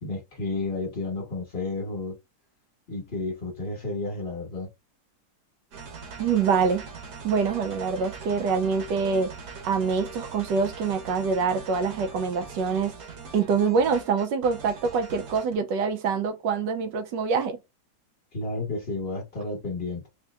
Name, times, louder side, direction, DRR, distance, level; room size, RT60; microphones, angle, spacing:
voice 1, 0.0-2.2 2.9-4.7 18.3-20.1, left 2 dB, 35° left, 1.4 m, -31 dB
sound 1, 5.7-15.6, right 5 dB, 65° right, 1.4 m, -42 dB
voice 2, 6.2-6.9 7.2-9.3 9.6-13.0 13.3-17.6, right 5 dB, 85° right, 1.4 m, -25 dB
4.5 x 2.8 x 2.4 m
omnidirectional pair, 1.9 m